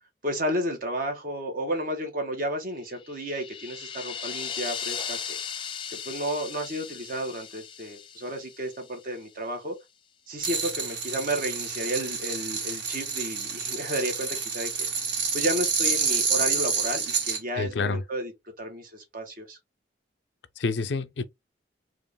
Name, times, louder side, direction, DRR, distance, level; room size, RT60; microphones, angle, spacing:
voice 1, 0.2-5.4 6.0-9.8 10.3-14.7 15.3-18.3 18.6-19.6, equal, 50° right, 1.3 m, -32 dB
sound 1, 2.9-9.1, left 7 dB, 30° left, 0.4 m, -37 dB
sound 2, 10.4-17.4, right 5 dB, 75° right, 1.7 m, -28 dB
voice 2, 17.5-18.0 20.6-21.2, left 4 dB, 80° left, 0.5 m, -28 dB
3.6 x 2.5 x 3.5 m
head